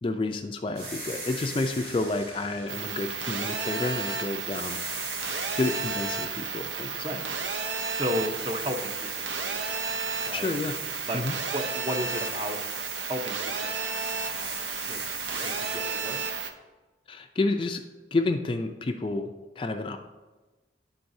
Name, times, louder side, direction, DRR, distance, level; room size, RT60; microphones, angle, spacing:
voice 1, 0.0-4.8 5.6-7.2 10.3-10.7 11.1-11.3 17.1-17.8 18.1-19.3 19.6-20.0, left 2 dB, 30° left, 5 dB, 0.3 m, -30 dB
sound 1, 0.8-4.0 4.5-7.9 8.3-15.8, right 2 dB, 60° right, 1.4 m, -42 dB
sound 2, 2.7-16.5, right 5 dB, 85° right, 0.7 m, -32 dB
voice 2, 7.9-9.9 10.3-10.5 11.1-11.2 11.5-12.6 13.0-13.9 14.3-15.2 15.4-16.2, equal, 30° right, 3 dB, 0.6 m, -34 dB
10.5 x 3.9 x 2.7 m, 1.2 s
head